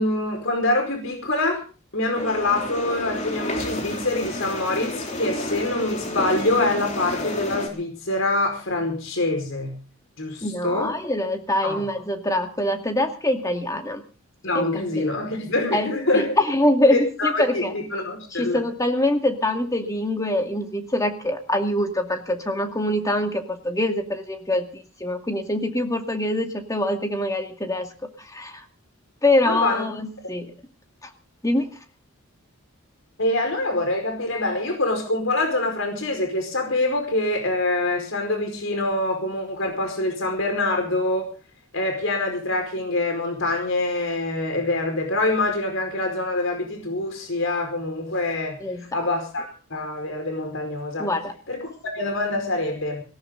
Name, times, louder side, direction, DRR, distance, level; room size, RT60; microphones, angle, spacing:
voice 1, 0.0-1.6 1.9-9.7 10.2-10.9 11.6-11.8 14.4-16.4 16.9-18.6 29.4-29.8 33.2-41.3 41.7-48.6 48.9-51.1 51.5-53.0, left 2 dB, 65° left, 4 dB, 5.0 m, -25 dB
sound 1, 2.1-7.7, left 1 dB, 35° left, 3.5 m, -31 dB
voice 2, 10.4-14.0 14.5-14.7 15.0-15.1 15.7-17.7 18.3-27.9 28.3-28.6 29.2-30.5 31.4-31.7 48.6-49.0 51.0-51.3, left 1 dB, 15° left, 5 dB, 2.2 m, -24 dB
18.5 x 18.5 x 3.9 m, 0.36 s
head